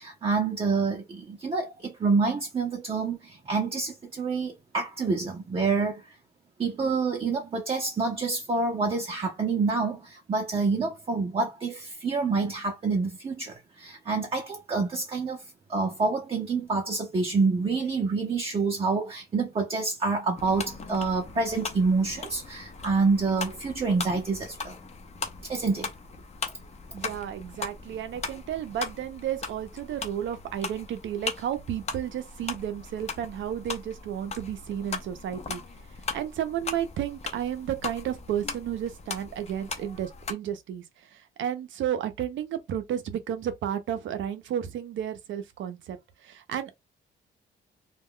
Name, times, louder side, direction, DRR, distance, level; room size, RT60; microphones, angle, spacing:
voice 1, 0.0-6.2 6.6-15.4 15.7-24.8 25.4-25.9, right 4 dB, 30° right, 0.6 m, -27 dB
sound 1, 20.4-40.3, left 4 dB, 35° left, 0.6 m, -39 dB
voice 2, 26.9-35.6 36.1-46.8, right 10 dB, 70° right, 0.6 m, -32 dB
2.3 x 2.2 x 3.6 m
cardioid pair, 90°, 20 cm